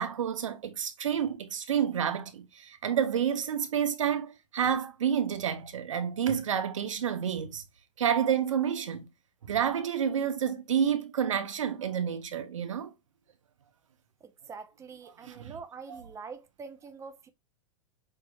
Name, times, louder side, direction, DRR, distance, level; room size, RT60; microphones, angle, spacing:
voice 1, 0.0-7.6 8.0-9.1 9.5-12.9 15.2-15.5, right 8 dB, 75° right, 0.8 m, -29 dB
voice 2, 14.2-17.3, right 5 dB, 20° right, 0.6 m, -45 dB
5.6 x 3.1 x 2.3 m
hypercardioid pair, 105°, 16 cm